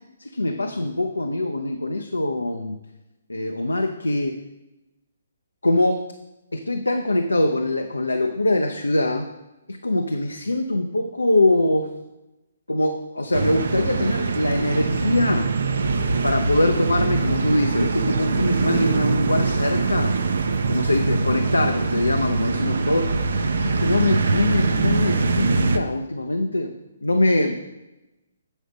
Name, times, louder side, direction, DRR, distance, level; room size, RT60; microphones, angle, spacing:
voice 1, 0.2-2.8 3.3-4.4 5.6-6.1 6.5-9.3 9.7-11.9 12.7-15.5 16.2-20.1 20.7-23.1 23.6-26.7 27.0-27.6, left 1 dB, 90° left, 5 dB, 0.5 m, -23 dB
sound 1, 13.3-25.8, right 4 dB, 65° right, 0.6 m, -23 dB
8.1 x 5.0 x 5.2 m, 1.0 s
figure-of-eight pair, 135°, 0 cm